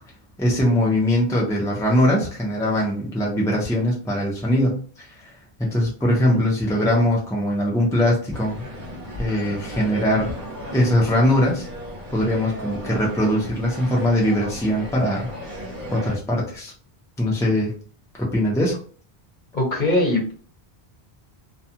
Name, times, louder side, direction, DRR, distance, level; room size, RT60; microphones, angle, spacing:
voice 1, 0.4-5.3 5.6-8.6 9.2-10.3 10.7-11.7 12.1-15.7 15.9-16.7 17.2-17.7 18.2-18.8, left 1 dB, 5° left, -3 dB, 0.6 m, -21 dB
sound 1, 8.3-16.2, equal, 50° right, 1.1 m, -35 dB
voice 2, 19.5-20.3, left 1 dB, 50° left, -1 dB, 0.9 m, -21 dB
2.4 x 2.3 x 2.8 m, 0.41 s
omnidirectional pair, 1.0 m